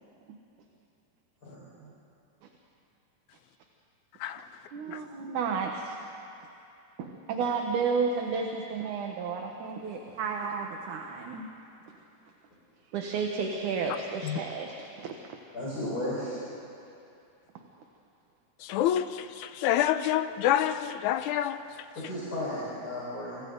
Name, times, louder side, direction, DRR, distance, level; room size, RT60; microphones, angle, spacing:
voice 1, 4.7-6.0 7.0-11.5 12.9-15.1, right 5 dB, 65° right, 2 dB, 2.5 m, -32 dB
voice 2, 15.5-16.4 22.0-23.4, left 1 dB, 25° left, -9 dB, 5.5 m, -34 dB
voice 3, 18.6-21.6, left 11 dB, 80° left, 10 dB, 1.8 m, -27 dB
29.0 x 26.5 x 4.0 m, 2.6 s
omnidirectional pair, 4.0 m